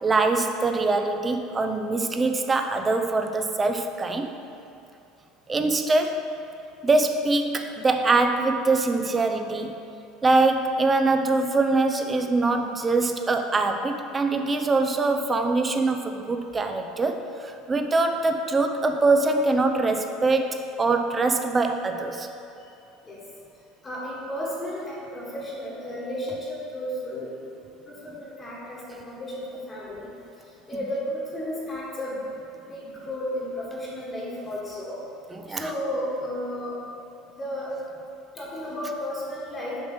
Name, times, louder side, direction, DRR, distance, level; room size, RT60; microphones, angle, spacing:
voice 1, 0.0-4.3 5.5-6.3 6.8-9.7 10.2-22.3 35.3-35.7, right 3 dB, 20° right, 6 dB, 0.4 m, -23 dB
voice 2, 23.8-27.3 27.8-30.1 30.7-32.2 32.7-35.0 35.5-36.8 37.3-37.7 38.3-39.8, left 1 dB, 20° left, -6 dB, 1.4 m, -33 dB
7.2 x 3.1 x 6.0 m, 2.7 s
cardioid pair, 140°, 0 cm